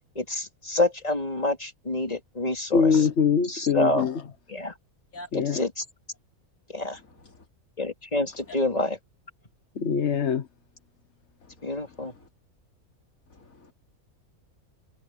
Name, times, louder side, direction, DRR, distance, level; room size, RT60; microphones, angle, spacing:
voice 1, 0.2-3.1 3.4-4.1 4.5-4.7 5.3-5.8 6.7-7.0 7.8-9.0 11.6-12.1, left 1 dB, 25° left, 3.8 m, -28 dB
voice 2, 2.7-4.1 5.3-5.6 9.8-10.4, left 6 dB, 55° left, 1.4 m, -23 dB
voice 3, 6.9-7.4 8.5-8.6 11.4-12.3 13.3-13.7, left 1 dB, 75° left, 3.1 m, -47 dB
omnidirectional pair, 1.5 m